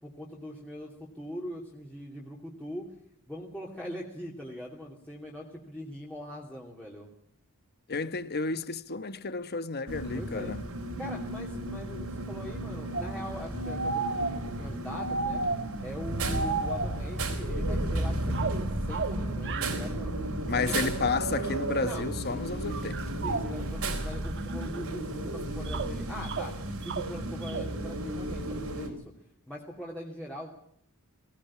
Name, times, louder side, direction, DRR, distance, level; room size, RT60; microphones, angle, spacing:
voice 1, 0.0-2.9 3.3-7.1 10.1-10.5 11.0-15.4 15.8-20.1 20.5-20.9 21.8-22.6 23.2-26.6 26.8-29.0 29.5-30.5, equal, 5° left, 2.8 m, -42 dB
voice 2, 7.9-10.6 20.5-23.0, left 4 dB, 45° left, 1.2 m, -31 dB
sound 1, 9.9-28.9, right 1 dB, 80° right, 4.0 m, -34 dB
sound 2, 12.9-15.9 16.2-18.0 18.3-19.8 20.7-20.8 21.6-22.1 22.7-24.8 25.2-27.7, right 4 dB, 55° right, 1.3 m, -34 dB
19.0 x 18.5 x 8.5 m
head